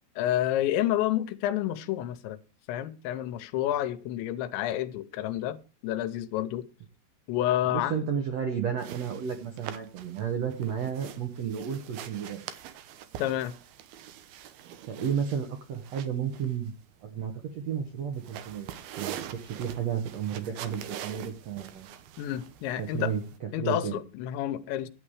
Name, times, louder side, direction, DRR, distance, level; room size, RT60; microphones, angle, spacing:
voice 1, 0.2-2.4 2.7-5.6 5.8-6.6 7.3-8.0 13.2-13.6 22.2-23.1 23.5-24.9, left 12 dB, 90° left, 3.2 m, -29 dB
voice 2, 7.6-12.4 14.9-16.7 17.0-21.9 22.8-24.0, right 7 dB, 85° right, 1.4 m, -32 dB
sound 1, 8.8-23.4, right 10 dB, 70° right, 2.5 m, -44 dB
12.0 x 8.9 x 4.8 m
omnidirectional pair, 5.1 m